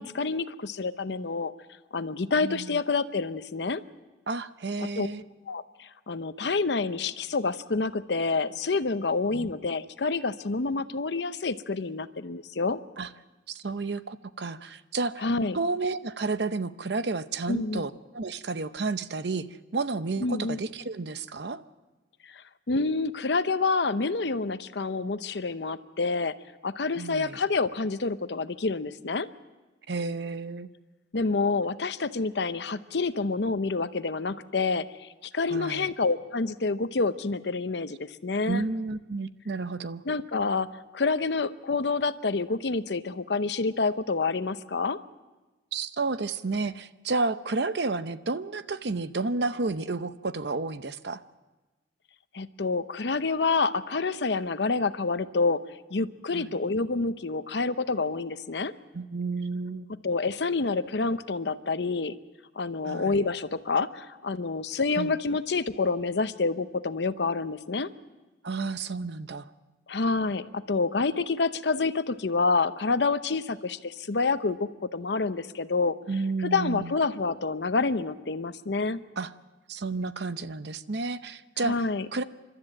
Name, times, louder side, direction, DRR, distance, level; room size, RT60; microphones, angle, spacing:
voice 1, 0.0-1.5 1.9-3.8 4.8-5.1 5.5-12.8 15.2-15.6 17.5-17.9 20.2-20.6 22.3-22.4 22.7-26.3 26.6-29.3 31.1-34.9 35.3-38.6 40.0-40.7 40.9-45.0 52.3-55.6 55.9-58.7 60.0-62.1 62.6-67.9 69.9-76.0 76.4-79.0 81.6-82.1, left 4 dB, 70° left, 12 dB, 0.8 m, -28 dB
voice 2, 2.4-2.8 4.3-5.2 9.3-9.5 13.0-13.1 13.5-15.2 15.5-19.5 19.7-21.6 27.0-27.4 29.9-30.7 35.5-35.9 38.5-40.0 45.7-51.2 56.3-56.5 58.9-59.9 62.8-63.2 65.0-65.1 68.4-69.5 76.1-76.9 79.2-79.3 79.7-81.7 82.1-82.2, right 3 dB, 65° right, 12 dB, 0.7 m, -31 dB
29.0 x 13.0 x 7.7 m, 1.2 s
head